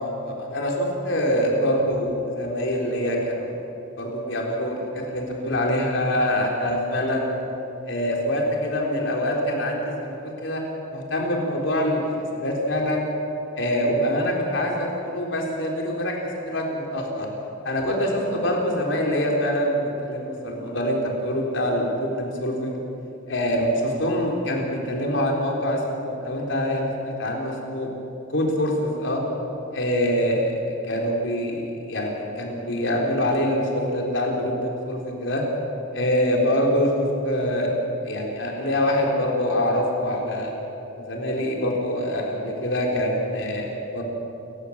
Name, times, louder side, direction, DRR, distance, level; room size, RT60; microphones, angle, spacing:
voice 1, 0.0-3.6 4.0-7.4 7.8-10.6 10.9-12.1 12.3-13.1 13.6-17.3 17.6-22.8 23.3-27.9 28.3-29.2 29.7-35.4 35.9-40.5 40.9-44.0, equal, 60° left, 0 dB, 3.9 m, -25 dB
28.5 x 15.0 x 7.4 m, 2.9 s
head